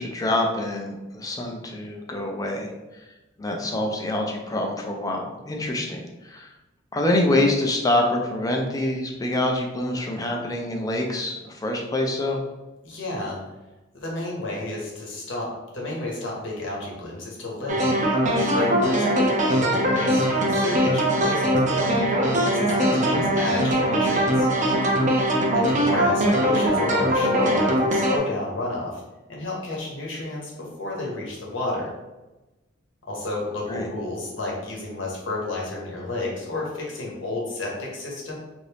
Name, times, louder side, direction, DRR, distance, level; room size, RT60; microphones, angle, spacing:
voice 1, 0.0-2.7 3.4-6.5 6.9-12.4 22.7-23.2 33.7-33.9, left 1 dB, 20° left, 1 dB, 0.5 m, -26 dB
voice 2, 12.8-13.4 13.9-22.0 22.5-24.5 25.5-29.0 29.3-31.9 33.0-38.4, left 2 dB, 75° left, -3 dB, 0.9 m, -31 dB
sound 1, 17.7-28.2, equal, 40° right, 0.5 m, -21 dB
2.9 x 2.6 x 3.3 m, 1.1 s
head